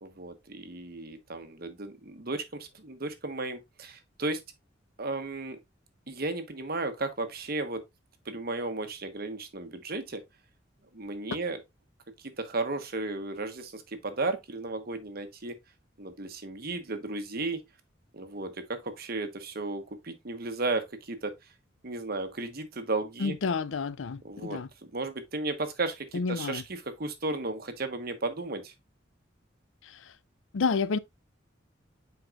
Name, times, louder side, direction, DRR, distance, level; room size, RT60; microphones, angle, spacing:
voice 1, 0.0-4.4 5.0-5.6 6.1-7.8 8.2-10.2 10.9-11.6 12.2-15.5 16.0-17.6 18.1-21.3 21.8-23.3 24.2-24.6 24.9-28.7, right 2 dB, 50° right, 1.1 m, -34 dB
voice 2, 23.2-24.7 26.1-26.6 30.5-31.0, left 4 dB, 90° left, 0.5 m, -29 dB
9.0 x 4.6 x 2.4 m
head